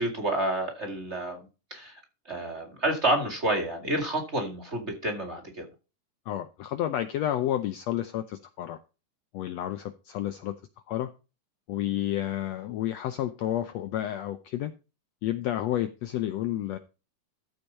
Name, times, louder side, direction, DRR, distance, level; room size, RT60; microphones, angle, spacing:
voice 1, 0.0-1.4 1.7-1.9 2.3-5.7, right 1 dB, 25° right, 1.8 m, -29 dB
voice 2, 6.3-8.8 9.3-10.5 10.9-11.1 11.7-14.7 15.2-16.8, left 12 dB, 85° left, 1.5 m, -30 dB
13.5 x 4.7 x 5.5 m
omnidirectional pair, 3.8 m